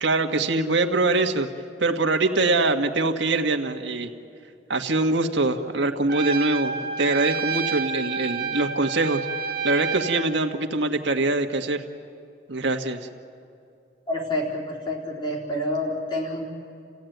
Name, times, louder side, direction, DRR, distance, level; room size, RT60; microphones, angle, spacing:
voice 1, 0.0-1.5 1.8-4.1 4.7-9.3 9.6-11.8 12.5-13.1, right 2 dB, 80° right, 5 dB, 1.6 m, -23 dB
Trumpet, 6.1-10.3, right 5 dB, 50° right, 1.4 m, -29 dB
voice 2, 14.1-16.5, left 1 dB, 25° left, -3 dB, 4.0 m, -28 dB
30.0 x 16.0 x 9.3 m, 2.5 s
head